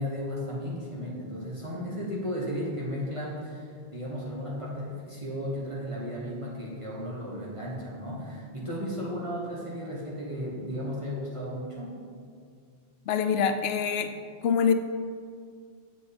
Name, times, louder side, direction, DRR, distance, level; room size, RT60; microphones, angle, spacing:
voice 1, 0.0-12.0, equal, 30° right, -5 dB, 1.4 m, -34 dB
voice 2, 13.1-14.1 14.4-14.7, left 7 dB, 80° left, 9 dB, 0.8 m, -24 dB
7.7 x 7.3 x 4.3 m, 2.1 s
omnidirectional pair, 1.0 m